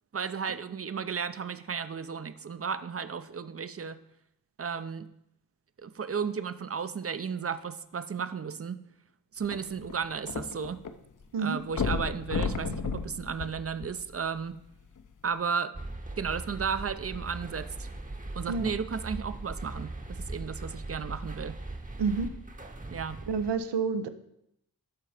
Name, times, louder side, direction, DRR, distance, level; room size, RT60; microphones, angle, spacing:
voice 1, 0.1-4.0 4.6-5.1 5.8-8.8 9.3-10.8 11.4-14.6 15.2-15.7 16.2-17.9 18.3-21.6 22.9-23.2, right 6 dB, 35° right, 12 dB, 0.6 m, -34 dB
sound 1, 9.4-10.9 11.2-11.3 11.7-14.3 15.0-15.1, left 5 dB, 50° left, 0.8 m, -32 dB
sound 2, 15.7-23.5, right 2 dB, 20° right, 0.9 m, -40 dB
voice 2, 23.3-24.1, right 5 dB, 85° right, 11 dB, 0.7 m, -29 dB
11.5 x 4.0 x 4.9 m, 0.78 s
cardioid pair, 45°, 41 cm